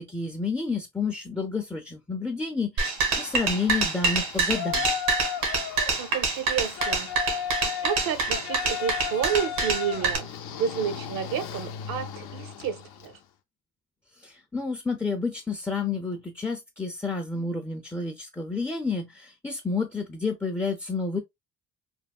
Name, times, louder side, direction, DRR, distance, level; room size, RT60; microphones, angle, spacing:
voice 1, 0.0-4.9 14.2-21.2, left 4 dB, 5° left, 0.5 m, -30 dB
sound 1, 2.8-10.2, right 4 dB, 80° right, 1.2 m, -26 dB
Yell, 2.9-13.2, left 9 dB, 80° left, 0.6 m, -35 dB
voice 2, 5.9-7.2 7.6-13.2, right 8 dB, 65° right, 0.8 m, -31 dB
3.4 x 2.1 x 2.3 m
cardioid pair, 90°, 36 cm